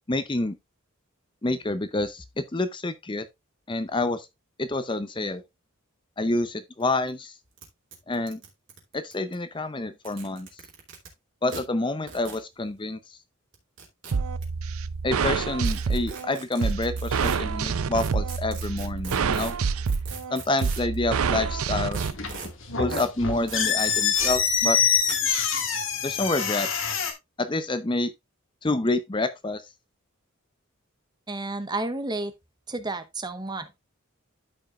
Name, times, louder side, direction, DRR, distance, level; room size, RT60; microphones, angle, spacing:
voice 1, 0.1-0.5 1.4-3.3 3.7-4.3 4.6-5.4 6.2-7.3 8.1-8.4 8.9-10.5 11.4-13.2 15.0-19.6 20.3-22.0 22.8-24.8 26.0-26.7 27.4-28.1 28.6-29.6, left 2 dB, 20° left, 0.6 m, -28 dB
sound 1, 6.8-6.9 7.1-7.2 7.6-7.7 7.9-9.3 9.9-11.1 11.5-11.6 12.1-12.4 13.5-14.4 15.6-17.4 18.0-21.0 21.9-22.5 22.9-23.1 23.5-24.4 25.1-25.2, right 5 dB, 60° right, 2.9 m, -40 dB
sound 2, 14.1-22.1, right 5 dB, 80° right, 0.6 m, -27 dB
sound 3, 22.1-27.1, left 7 dB, 60° left, 1.9 m, -25 dB
voice 2, 31.3-32.3 32.7-33.8, right 2 dB, 20° right, 0.8 m, -31 dB
13.0 x 5.4 x 2.4 m
head